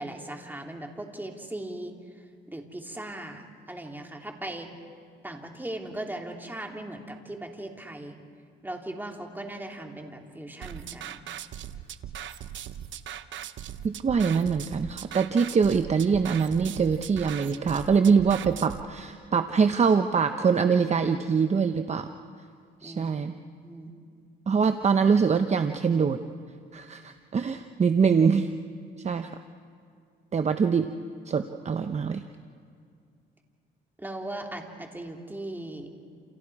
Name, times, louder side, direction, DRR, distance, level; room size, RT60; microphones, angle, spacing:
voice 1, 0.0-1.9 2.5-4.7 5.2-8.2 8.6-11.2 22.8-23.1 23.6-23.9 34.0-35.9, right 1 dB, 10° right, 2 dB, 3.1 m, -38 dB
sound 1, 10.6-18.8, right 10 dB, 70° right, 0.9 m, -39 dB
voice 2, 13.8-22.1 22.8-23.3 24.5-26.2 26.7-28.5 29.0-29.3 30.3-30.9 31.3-32.2, right 5 dB, 35° right, 8 dB, 0.9 m, -24 dB
29.0 x 29.0 x 4.9 m, 2.3 s
cardioid pair, 90°, 20 cm